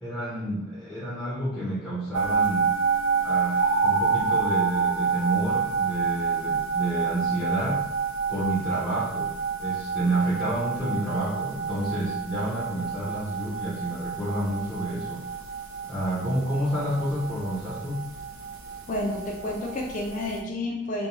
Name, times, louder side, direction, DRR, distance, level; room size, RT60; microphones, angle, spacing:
voice 1, 0.0-2.7 3.2-7.8 8.3-9.3 9.6-15.2 15.8-18.0, right 1 dB, ahead, -9 dB, 0.6 m, -29 dB
sound 1, 2.1-20.4, right 6 dB, 65° right, 0.3 m, -29 dB
sound 2, 3.6-6.1, right 1 dB, 90° right, 1.1 m, -29 dB
voice 2, 18.9-21.1, left 1 dB, 35° left, -1 dB, 0.3 m, -30 dB
2.5 x 2.2 x 3.0 m, 0.87 s
head